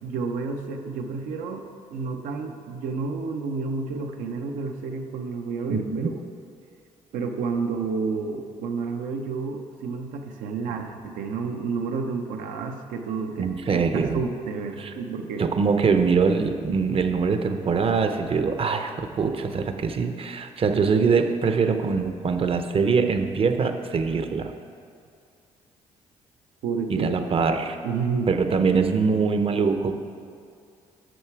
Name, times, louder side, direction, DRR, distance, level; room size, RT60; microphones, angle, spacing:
voice 1, 0.0-1.6 1.9-6.2 7.1-15.5 26.6-27.1 27.8-28.3, right 4 dB, 85° right, 4 dB, 0.7 m, -30 dB
voice 2, 5.7-6.1 13.4-14.2 14.8-14.9 15.4-24.5 26.9-27.8 28.3-30.0, right 5 dB, 45° right, 8 dB, 0.7 m, -23 dB
9.1 x 6.7 x 4.7 m, 2.3 s
supercardioid pair, 70°, 13 cm